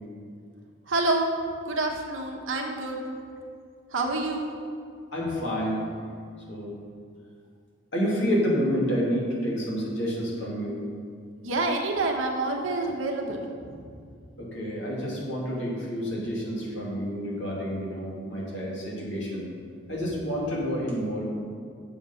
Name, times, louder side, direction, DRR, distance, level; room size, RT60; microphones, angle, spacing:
voice 1, 0.9-1.3 1.6-3.0 3.9-4.5 11.4-13.8, right 2 dB, 75° right, 1 dB, 1.2 m, -28 dB
voice 2, 5.1-5.8 6.5-6.7 7.9-10.8 14.4-19.5 19.9-21.2, equal, 60° left, -4 dB, 2.5 m, -29 dB
7.8 x 7.0 x 5.6 m, 2.3 s
head